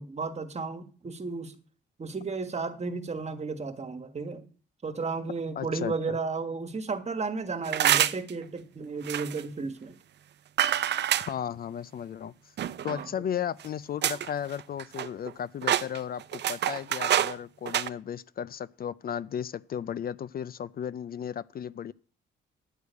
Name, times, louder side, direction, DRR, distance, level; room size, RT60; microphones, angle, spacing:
voice 1, 0.0-1.5 2.0-4.4 4.8-10.0 12.9-13.1, right 4 dB, 35° right, 1.6 m, -33 dB
voice 2, 5.6-6.2 11.1-12.5 12.8-21.9, left 9 dB, 50° left, 0.5 m, -35 dB
sound 1, 7.7-8.3 9.1-9.4 10.6-11.3 12.6-13.1 13.6-13.7 14.0-14.3 14.6-15.3 15.6-17.4 17.7-17.9, right 11 dB, 60° right, 0.7 m, -26 dB
10.0 x 6.4 x 8.3 m
cardioid pair, 90°, 20 cm